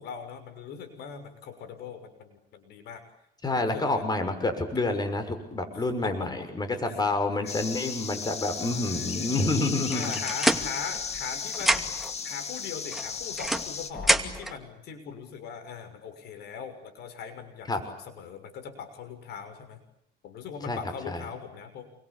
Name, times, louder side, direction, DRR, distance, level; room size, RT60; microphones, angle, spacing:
voice 1, 0.0-3.0 3.5-4.0 5.7-6.5 6.9-7.0 7.4-7.5 8.6-9.4 9.9-11.9 12.2-19.8 20.2-21.9, left 6 dB, 75° left, 9 dB, 6.4 m, -40 dB
voice 2, 3.4-10.1 17.7-17.8 20.7-20.8 21.1-21.2, left 2 dB, 25° left, 8 dB, 6.5 m, -28 dB
sound 1, 7.5-13.9, left 6 dB, 40° left, 2.2 m, -35 dB
sound 2, 9.9-11.3 11.5-12.1 12.9-14.6, right 1 dB, ahead, 2.5 m, -27 dB
29.0 x 23.5 x 8.6 m, 0.72 s
cardioid pair, 110°, 17 cm